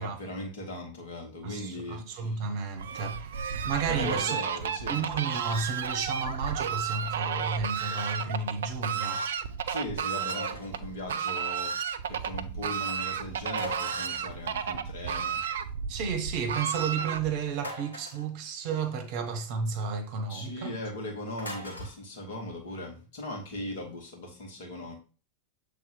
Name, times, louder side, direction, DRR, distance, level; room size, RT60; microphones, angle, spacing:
voice 1, 0.0-2.4 3.9-5.1 9.7-11.7 12.1-15.4 20.3-25.0, left 1 dB, 55° left, 2.2 m, -39 dB
voice 2, 1.4-4.4 4.9-9.3 15.9-20.8, right 5 dB, 45° right, 1.1 m, -32 dB
Fowl, 2.8-17.5, right 7 dB, 60° right, 0.4 m, -33 dB
sound 1, 10.3-10.8 13.5-14.3 17.6-18.3 21.4-21.9, left 1 dB, 80° left, 1.4 m, -40 dB
7.5 x 3.5 x 3.9 m
figure-of-eight pair, 90°, 0 cm